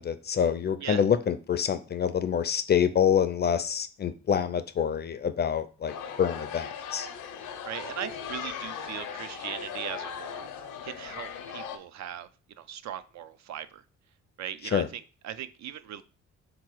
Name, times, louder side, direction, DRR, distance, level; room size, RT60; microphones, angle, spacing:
voice 1, 0.0-7.1 14.7-14.9, left 8 dB, 35° left, 0.4 m, -26 dB
sound 1, 5.9-11.8, left 7 dB, 85° left, 0.6 m, -38 dB
voice 2, 7.6-10.4 10.8-13.8 14.4-16.0, right 10 dB, 65° right, 0.5 m, -39 dB
3.8 x 2.9 x 4.6 m
cardioid pair, 90°, 30 cm